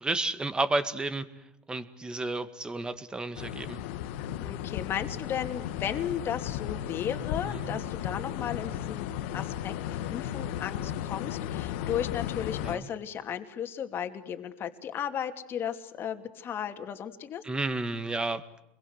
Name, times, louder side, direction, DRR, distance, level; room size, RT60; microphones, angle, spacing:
voice 1, 0.0-1.3 1.7-3.8 7.5-7.8 12.6-12.9 17.4-18.4, right 2 dB, 15° right, 12 dB, 2.0 m, -31 dB
sound 1, 3.4-12.8, left 11 dB, 75° left, 1.5 m, -35 dB
voice 2, 4.4-9.1 9.3-17.4, left 9 dB, 35° left, 7 dB, 2.7 m, -35 dB
28.0 x 22.0 x 8.2 m, 0.87 s
supercardioid pair, 120°, 6 cm